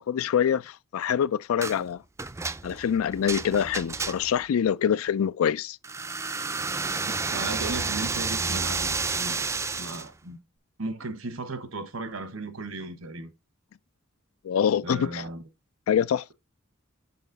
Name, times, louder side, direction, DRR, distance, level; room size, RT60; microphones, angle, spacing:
voice 1, 0.0-2.0 2.6-5.8 14.4-15.2 15.9-16.3, left 8 dB, 85° left, 0.3 m, -25 dB
sound 1, 1.6-1.8 2.2-4.4 5.8-10.1, right 4 dB, 15° right, 0.4 m, -30 dB
voice 2, 7.3-9.4 9.7-10.4 10.8-13.3 14.8-15.4, right 2 dB, 80° right, 1.2 m, -35 dB
6.5 x 4.2 x 3.9 m
head